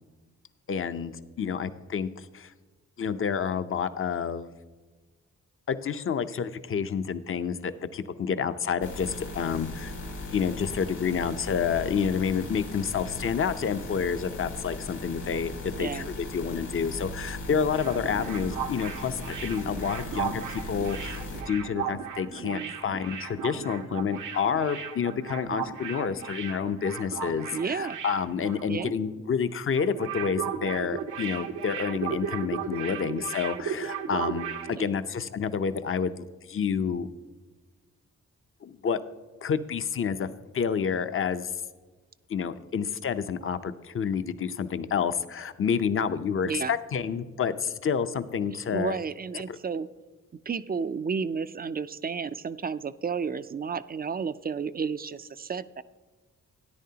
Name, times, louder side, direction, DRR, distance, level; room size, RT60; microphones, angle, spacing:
voice 1, 0.7-2.5 3.0-4.5 5.7-9.9 10.3-37.1 38.6-39.0 39.4-40.3 40.5-41.5 42.3-49.0 49.3-49.6, left 6 dB, 45° left, 12 dB, 0.6 m, -29 dB
sound 1, 8.8-21.4, left 2 dB, 85° left, 3.0 m, -38 dB
voice 2, 15.7-16.1 22.4-22.7 27.5-28.0 28.7-28.9 34.7-35.0 46.4-46.7 48.7-49.9 50.5-55.8, right 5 dB, 30° right, 14 dB, 0.4 m, -32 dB
sound 2, 17.5-29.0 29.3-29.5 29.7-34.7, right 8 dB, 85° right, 0.9 m, -36 dB
13.0 x 10.0 x 2.8 m, 1.3 s
cardioid pair, 60°, 30 cm